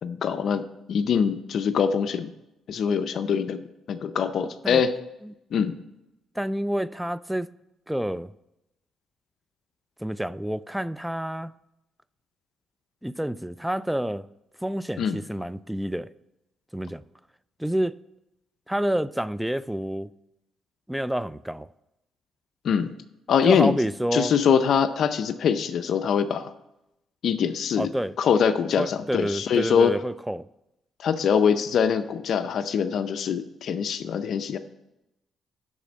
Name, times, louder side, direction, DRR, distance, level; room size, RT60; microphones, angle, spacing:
voice 1, 0.0-2.3 2.7-3.6 3.9-4.9 5.5-5.8 15.0-15.2 22.6-22.9 23.3-23.8 24.1-26.5 27.2-27.9 28.2-30.0 31.0-34.6, left 7 dB, 65° left, 0.5 m, -23 dB
voice 2, 6.4-7.5 7.9-8.3 10.0-11.5 13.0-14.3 14.6-16.1 16.7-17.0 17.6-18.0 18.7-20.1 20.9-21.7 23.4-24.3 27.8-28.2 28.8-30.5, right 1 dB, 5° right, 0.3 m, -28 dB
11.0 x 4.2 x 7.3 m
cardioid pair, 90°, 0 cm